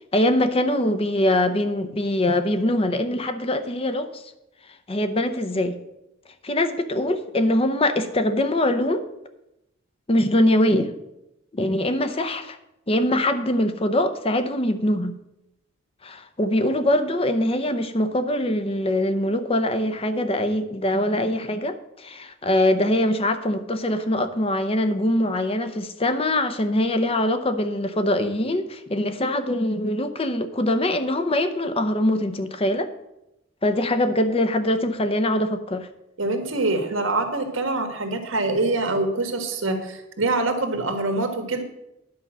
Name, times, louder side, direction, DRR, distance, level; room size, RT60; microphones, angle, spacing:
voice 1, 0.1-4.2 4.9-5.7 6.4-9.0 10.1-10.9 11.5-12.6 12.9-15.2 16.0-32.9 33.6-35.9, left 1 dB, 30° left, 9 dB, 0.7 m, -23 dB
voice 2, 36.2-41.6, right 2 dB, 85° right, 5 dB, 1.6 m, -25 dB
10.5 x 5.4 x 7.3 m, 0.88 s
head